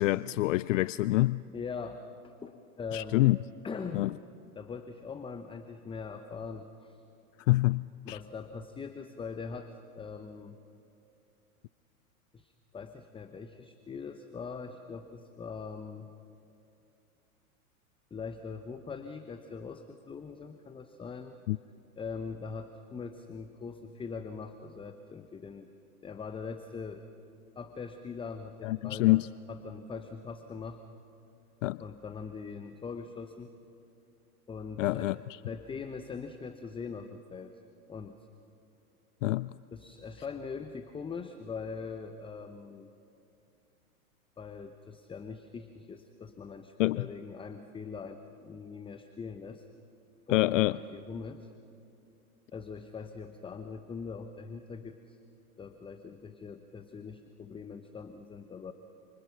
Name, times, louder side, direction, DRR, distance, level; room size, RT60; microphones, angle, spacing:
voice 1, 0.0-1.4 2.9-3.4 3.9-4.1 7.5-8.2 21.5-21.6 28.6-29.3 31.6-31.8 34.8-35.1 39.2-39.5 46.8-47.1 50.3-50.8, left 18 dB, 60° left, 0.5 m, -26 dB
voice 2, 1.5-3.2 3.6-4.1 4.5-7.0 8.0-10.6 12.3-16.1 18.1-21.4 22.0-25.7 26.0-27.0 27.6-30.8 31.8-33.5 34.5-35.1 35.5-37.6 37.9-38.2 39.7-42.9 44.4-49.7 50.3-51.5 52.5-55.2 55.6-58.7, left 5 dB, 10° left, 0.9 m, -42 dB
28.5 x 26.5 x 5.9 m
hypercardioid pair, 105°, 45 cm